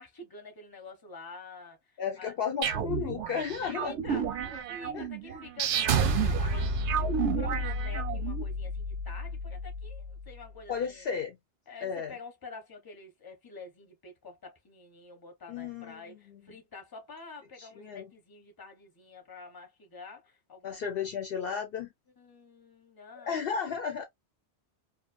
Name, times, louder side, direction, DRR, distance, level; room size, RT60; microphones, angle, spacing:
voice 1, 0.0-2.3 3.7-11.1 11.7-21.1 22.2-23.4, left 3 dB, 20° left, 0.8 m, -48 dB
voice 2, 2.0-4.0 4.9-5.4 10.7-11.4 11.8-12.1 15.5-16.2 17.6-18.1 20.6-21.9 23.2-24.0, left 7 dB, 65° left, 0.7 m, -34 dB
sound 1, 2.6-8.4, right 8 dB, 90° right, 0.9 m, -32 dB
sound 2, 5.9-10.4, right 2 dB, 60° right, 0.6 m, -31 dB
2.5 x 2.4 x 2.4 m
omnidirectional pair, 1.1 m